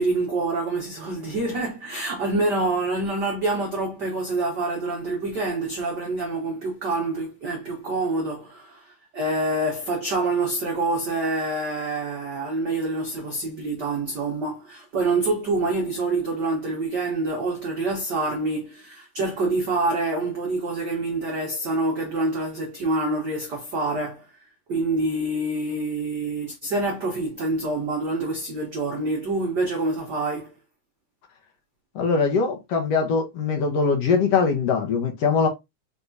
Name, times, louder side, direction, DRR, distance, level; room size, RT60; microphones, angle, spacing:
voice 1, 0.0-24.3 24.7-30.5, right 2 dB, 75° right, 0.9 m, -26 dB
voice 2, 32.0-35.5, left 5 dB, 70° left, 1.8 m, -22 dB
4.7 x 3.4 x 2.6 m
omnidirectional pair, 3.3 m